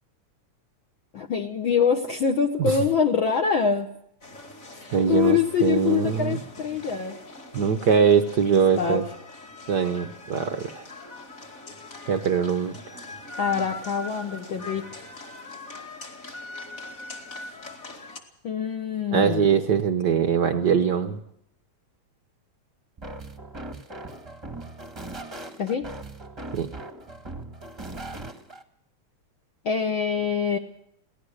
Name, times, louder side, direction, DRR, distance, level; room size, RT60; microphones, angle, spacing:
voice 1, 1.1-3.9 4.7-7.2 8.5-9.0 13.4-15.0 18.4-19.6 25.6-25.9 29.6-30.6, left 6 dB, 55° left, 4 dB, 1.5 m, -25 dB
sound 1, 4.2-18.2, left 2 dB, 25° left, 2.3 m, -42 dB
voice 2, 4.9-6.4 7.5-9.0 9.7-10.9 12.1-12.8 19.1-21.2 26.5-26.7, right 7 dB, 75° right, 7 dB, 0.9 m, -22 dB
sound 2, 23.0-28.6, right 2 dB, 15° right, 0.9 m, -39 dB
23.5 x 17.5 x 6.5 m, 0.75 s
omnidirectional pair, 3.3 m